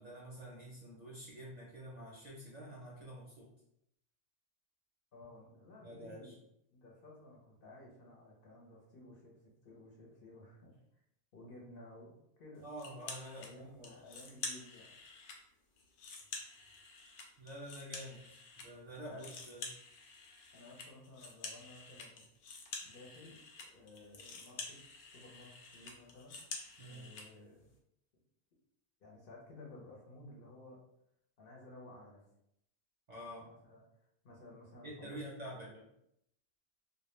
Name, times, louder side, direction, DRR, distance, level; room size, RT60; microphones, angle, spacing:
voice 1, 0.0-3.5 5.8-6.3 12.6-13.9 17.4-19.7 26.8-27.0 33.1-33.5 34.8-35.9, equal, 50° right, -5 dB, 0.5 m, -48 dB
voice 2, 5.1-6.3 6.7-9.3 9.6-11.0 11.3-12.7 13.3-14.9 18.9-19.3 20.5-22.3 22.8-24.8 25.1-26.5 26.8-27.7 29.0-30.8 31.4-32.2 33.3-33.8 34.2-35.2 35.5-35.6, left 2 dB, 60° left, -2 dB, 0.8 m, -55 dB
sound 1, 12.8-13.5 13.8-15.4 15.8-18.7 18.9-27.3, left 4 dB, 90° left, 0.9 m, -48 dB
2.2 x 2.1 x 3.0 m, 0.77 s
omnidirectional pair, 1.1 m